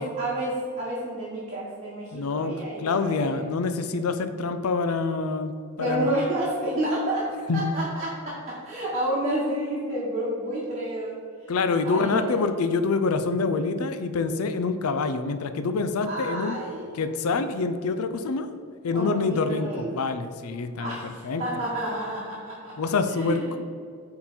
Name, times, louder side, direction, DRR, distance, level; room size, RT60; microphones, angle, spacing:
voice 1, 0.0-3.4 5.8-11.5 11.8-12.5 16.0-16.8 18.9-19.9 20.8-23.6, right 1 dB, 30° right, -7 dB, 1.4 m, -30 dB
voice 2, 2.1-6.1 7.5-7.7 11.5-16.6 16.9-18.5 18.8-21.0 21.2-21.4 22.8-23.6, left 4 dB, 80° left, 9 dB, 0.5 m, -26 dB
8.7 x 3.9 x 4.4 m, 2.3 s
head